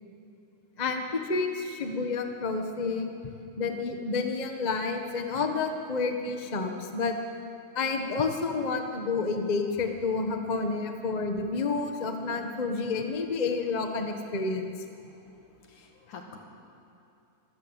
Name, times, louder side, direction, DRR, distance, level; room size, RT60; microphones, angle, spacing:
voice 1, 0.8-7.1 7.7-14.7, left 4 dB, 50° left, 4 dB, 0.5 m, -30 dB
voice 2, 15.7-16.4, left 5 dB, 75° left, 2 dB, 3.6 m, -47 dB
24.5 x 13.5 x 8.3 m, 2.8 s
omnidirectional pair, 3.4 m